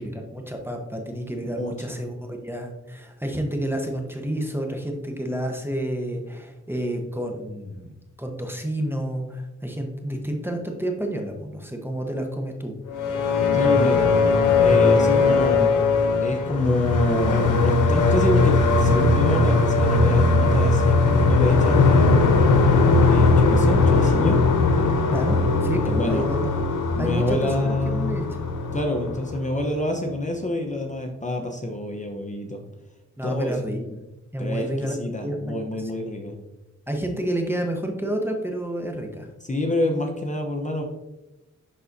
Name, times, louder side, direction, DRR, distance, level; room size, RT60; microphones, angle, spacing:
voice 1, 0.0-12.8 25.1-26.5 27.0-28.3 33.2-34.0 34.3-35.0 35.2-36.1 36.9-39.3, right 1 dB, 5° right, 2 dB, 1.1 m, -30 dB
voice 2, 1.6-2.0 13.5-14.2 14.6-15.7 16.2-22.4 23.0-24.4 25.9-26.2 26.9-28.2 28.7-32.6 33.2-33.6 34.4-36.3 39.4-40.8, left 1 dB, 25° left, 2 dB, 0.9 m, -27 dB
sound 1, 12.9-29.8, left 3 dB, 90° left, 0.8 m, -19 dB
11.0 x 4.0 x 2.7 m, 0.99 s
cardioid pair, 60°, 30 cm